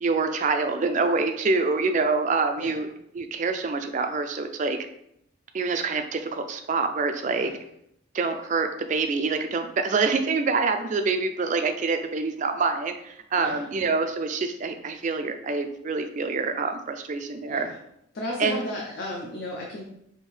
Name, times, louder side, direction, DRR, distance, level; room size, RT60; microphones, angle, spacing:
voice 1, 0.0-2.9 3.1-4.8 5.5-7.5 8.1-17.7 18.4-18.6, right 4 dB, 35° right, 7 dB, 0.3 m, -26 dB
voice 2, 13.4-13.7 17.5-17.8 18.1-19.8, left 1 dB, 50° left, -2 dB, 0.5 m, -34 dB
4.5 x 2.7 x 3.2 m, 0.77 s
head